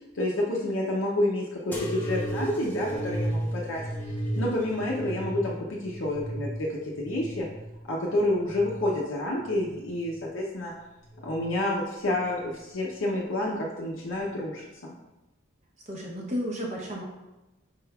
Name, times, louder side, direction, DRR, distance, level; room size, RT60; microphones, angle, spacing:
voice 1, 0.1-3.8 4.4-7.5 7.9-10.7 11.2-14.9, left 1 dB, 65° left, -4 dB, 0.6 m, -29 dB
sound 1, 1.7-8.9 9.5-10.2 11.0-11.5 12.5-12.6, right 1 dB, 10° left, 0.5 m, -34 dB
voice 2, 15.9-17.0, equal, 35° right, -1 dB, 0.8 m, -32 dB
4.9 x 3.3 x 2.3 m, 1.0 s
head